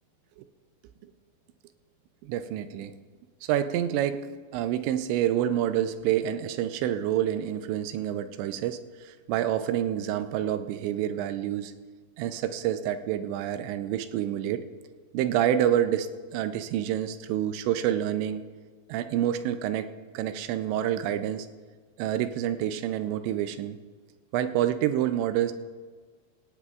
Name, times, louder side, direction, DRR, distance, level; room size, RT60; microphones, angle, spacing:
voice 1, 2.2-2.9 3.4-11.7 12.2-14.7 15.1-18.4 18.9-21.5 22.0-23.8 24.3-25.5, right 11 dB, 80° right, 10 dB, 2.7 m, -28 dB
18.0 x 17.0 x 2.4 m, 1.5 s
omnidirectional pair, 5.4 m